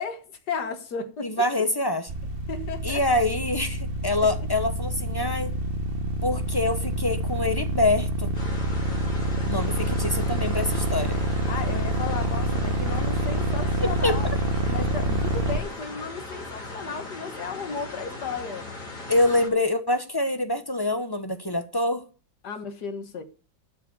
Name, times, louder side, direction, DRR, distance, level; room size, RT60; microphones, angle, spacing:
voice 1, 0.0-1.3 2.5-3.0 11.5-14.4 14.7-18.7 22.4-23.2, left 5 dB, 60° left, 2.0 m, -34 dB
voice 2, 1.2-2.1 2.8-5.5 6.2-8.3 9.5-11.2 14.0-14.2 19.1-22.0, left 2 dB, 25° left, 0.5 m, -25 dB
sound 1, 2.1-15.6, right 1 dB, 40° right, 0.9 m, -27 dB
sound 2, 8.3-19.5, left 2 dB, 45° left, 3.8 m, -38 dB
12.5 x 5.0 x 8.7 m
omnidirectional pair, 2.0 m